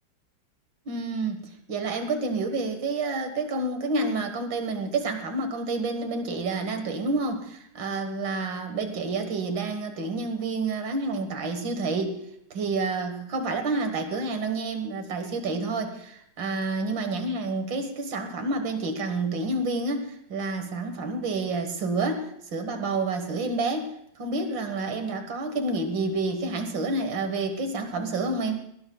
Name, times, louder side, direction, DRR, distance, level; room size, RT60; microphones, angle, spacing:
voice 1, 0.9-1.4 1.7-12.2 12.5-28.6, right 3 dB, 80° right, 6 dB, 2.2 m, -29 dB
21.0 x 18.0 x 2.3 m, 0.74 s
omnidirectional pair, 2.0 m